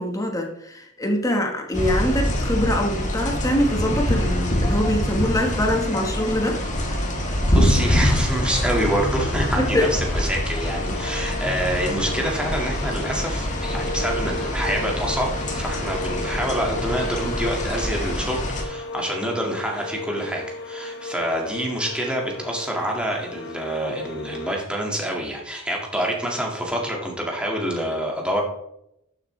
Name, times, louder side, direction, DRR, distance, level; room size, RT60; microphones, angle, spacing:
voice 1, 0.0-6.6 9.6-9.9, left 1 dB, 15° left, 2 dB, 1.3 m, -24 dB
sound 1, 1.7-18.6, left 1 dB, 35° left, 1.6 m, -25 dB
voice 2, 7.5-28.4, right 1 dB, 5° right, -1 dB, 1.9 m, -27 dB
sound 2, 10.6-24.6, left 2 dB, 55° left, 1.4 m, -35 dB
11.5 x 7.1 x 3.2 m, 0.78 s
head